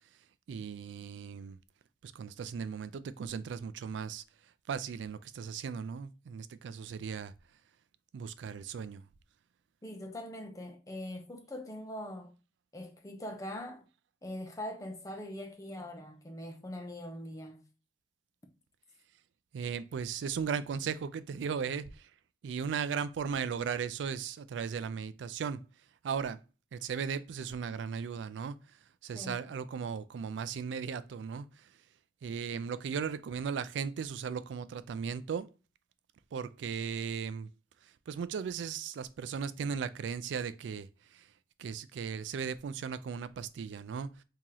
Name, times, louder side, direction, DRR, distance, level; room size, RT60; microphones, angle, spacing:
voice 1, 0.5-1.6 2.2-4.2 4.7-7.3 8.1-9.0 19.5-21.8 22.4-25.6 26.0-26.4 26.7-28.6 29.0-31.5 32.2-35.5 36.3-37.5 38.1-40.9 41.6-44.1, right 6 dB, 80° right, 0.3 m, -36 dB
voice 2, 9.8-12.3 12.7-13.8 14.2-17.6 29.1-29.4, left 1 dB, 20° left, 0.6 m, -42 dB
2.9 x 2.8 x 3.7 m
head